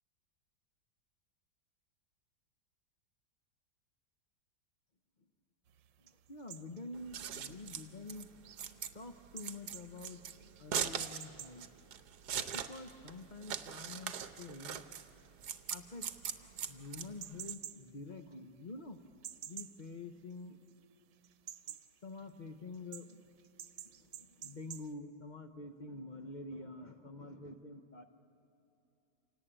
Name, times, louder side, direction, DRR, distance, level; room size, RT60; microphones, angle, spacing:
sound 1, 5.7-20.8 21.1-24.9, right 10 dB, 90° right, 1.4 m, -53 dB
voice 1, 6.0-8.3 8.9-10.2 10.6-11.7 12.5-14.8 15.7-19.0 19.5-20.6 21.7-21.8 22.0-23.3 23.8-28.0, left 3 dB, 45° left, 6 dB, 0.6 m, -48 dB
Scissors, 6.9-17.5, right 8 dB, 70° right, 1.4 m, -41 dB
27.5 x 18.0 x 8.8 m, 2.8 s
omnidirectional pair, 1.9 m